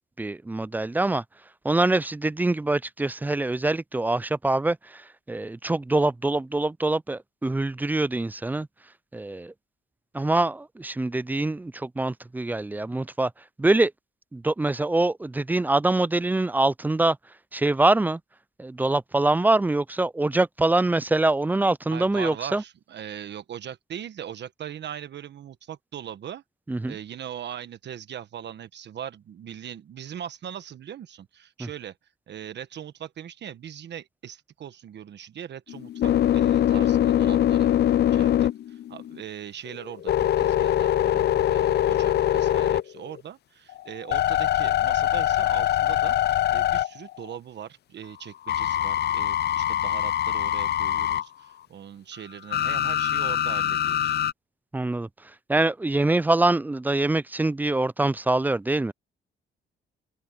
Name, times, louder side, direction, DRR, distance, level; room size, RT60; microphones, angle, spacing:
voice 1, 0.2-1.2 1.6-8.7 9.1-9.5 10.1-13.9 14.3-17.2 17.5-18.2 18.6-22.6 26.7-27.0 31.6-31.7 54.7-58.9, right 2 dB, 10° right, 0.3 m, -24 dB
voice 2, 21.9-26.4 26.8-31.9 32.3-37.7 38.1-54.2, right 9 dB, 60° right, 1.3 m, -40 dB
sound 1, 35.7-39.2 39.7-43.2 43.7-47.4 48.5-51.2 52.5-54.3, left 11 dB, 55° left, 0.5 m, -23 dB
open air
cardioid pair, 90°, 20 cm